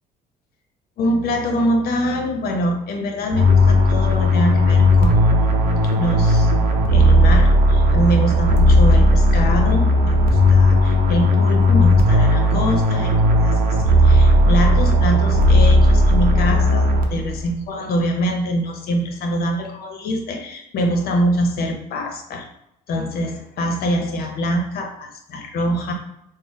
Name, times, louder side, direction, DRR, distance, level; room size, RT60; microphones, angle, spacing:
voice 1, 1.0-5.3 5.8-6.5 6.9-13.1 13.4-22.5 22.9-25.9, equal, 65° left, 4 dB, 0.8 m, -24 dB
sound 1, 3.3-17.4, left 1 dB, 60° right, 0.7 m, -15 dB
3.3 x 2.0 x 4.1 m, 0.79 s
cardioid pair, 110°, 17 cm